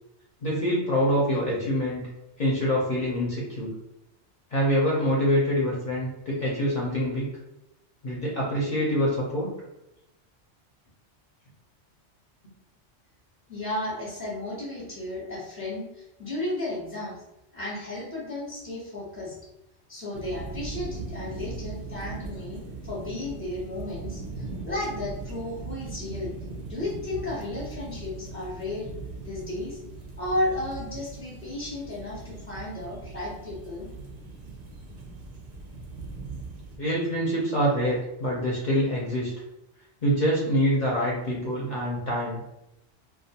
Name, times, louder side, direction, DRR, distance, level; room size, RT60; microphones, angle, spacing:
voice 1, 0.4-2.1 2.4-3.7 4.5-7.3 8.0-9.5 36.8-39.3 40.0-42.4, equal, 50° left, -5 dB, 0.6 m, -25 dB
voice 2, 13.5-17.2 17.5-19.4 19.9-26.3 26.7-28.9 29.2-29.8 30.2-33.9, left 2 dB, 15° right, -6 dB, 0.6 m, -33 dB
sound 1, 20.1-36.8, right 3 dB, 60° right, 0.7 m, -39 dB
2.3 x 2.3 x 2.7 m, 0.89 s
omnidirectional pair, 1.2 m